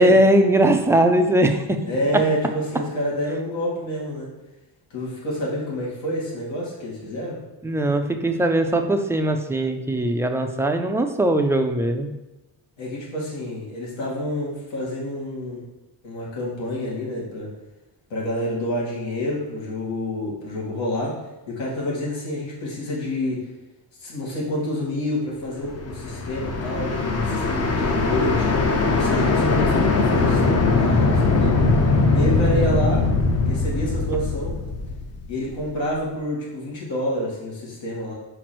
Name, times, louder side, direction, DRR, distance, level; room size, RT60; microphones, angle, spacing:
voice 1, 0.0-1.8 7.1-7.2 7.6-12.1, right 1 dB, 5° right, 5 dB, 0.3 m, -20 dB
voice 2, 1.8-4.3 4.9-7.4 12.8-15.6 16.0-17.5 18.1-21.1 21.5-23.4 24.0-28.5 28.9-31.5 32.1-33.0 33.4-34.5 35.3-38.1, left 1 dB, 90° left, -5 dB, 2.5 m, -28 dB
sound 1, 25.6-35.6, left 3 dB, 35° left, 0.6 m, -21 dB
4.9 x 4.6 x 6.0 m, 1.0 s
wide cardioid pair, 165°, 44 cm